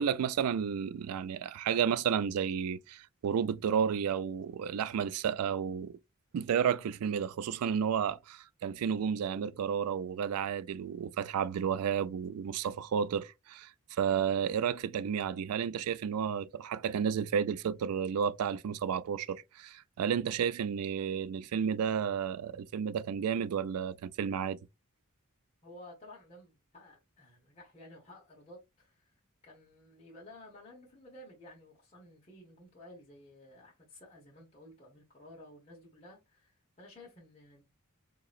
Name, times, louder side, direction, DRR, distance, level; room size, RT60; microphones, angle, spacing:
voice 1, 0.0-6.0 6.3-24.6, right 7 dB, 85° right, 0.3 m, -32 dB
voice 2, 25.6-29.1 29.4-37.6, left 1 dB, 30° left, 1.1 m, -54 dB
4.0 x 2.9 x 2.4 m
head